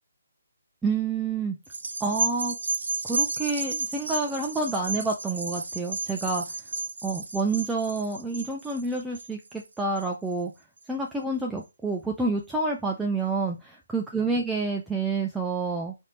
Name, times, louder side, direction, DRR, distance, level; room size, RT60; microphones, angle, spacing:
voice 1, 0.8-1.6 2.0-2.6 3.0-6.4 7.0-10.5 10.9-15.9, right 3 dB, 5° right, 0 dB, 0.3 m, -28 dB
sound 1, 1.7-10.3 10.8-10.9, right 4 dB, 85° right, 0.8 m, -32 dB
3.4 x 2.6 x 4.1 m, 0.25 s
hypercardioid pair, 175°, 0 cm